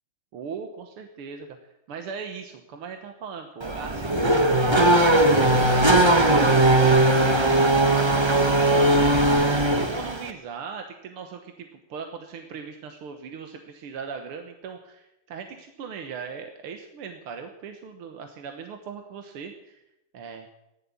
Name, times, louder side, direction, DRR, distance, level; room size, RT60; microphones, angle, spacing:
voice 1, 0.3-4.2 4.9-19.8 20.1-20.5, right 6 dB, 80° right, 5 dB, 2.1 m, -39 dB
Race car auto racing / Accelerating revving vroom, 3.6-10.3, right 1 dB, 25° right, 0.5 m, -19 dB
14.5 x 11.0 x 8.5 m, 0.90 s
omnidirectional pair, 2.4 m